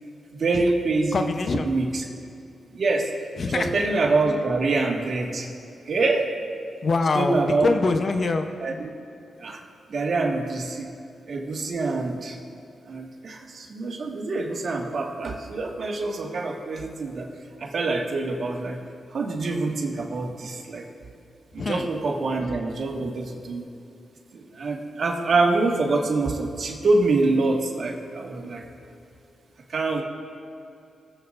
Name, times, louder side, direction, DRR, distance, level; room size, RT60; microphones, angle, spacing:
voice 1, 0.4-1.3 1.5-2.1 2.7-3.1 3.5-5.5 5.8-6.3 7.1-7.7 8.6-8.9 9.4-9.6 9.9-10.9 11.3-12.4 12.9-17.3 17.6-18.8 19.1-20.8 21.5-23.7 24.3-28.6 29.7-30.0, right 3 dB, 60° right, 0 dB, 1.8 m, -25 dB
voice 2, 1.1-1.7 3.4-3.7 6.8-8.5 21.6-21.9, left 3 dB, 55° left, 7 dB, 0.8 m, -24 dB
22.5 x 7.9 x 2.6 m, 2.6 s
cardioid pair, 60°, 0 cm